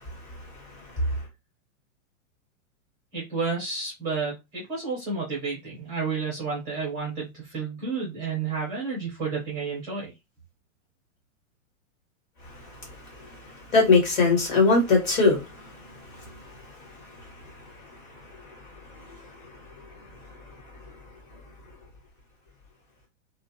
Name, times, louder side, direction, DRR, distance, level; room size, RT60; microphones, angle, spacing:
voice 1, 3.1-10.1, right 4 dB, 10° right, 0.4 m, -31 dB
voice 2, 13.7-16.0 16.2-16.4 18.9-19.1, left 4 dB, 35° left, 1.3 m, -21 dB
2.4 x 2.0 x 2.7 m
supercardioid pair, 170°, 39 cm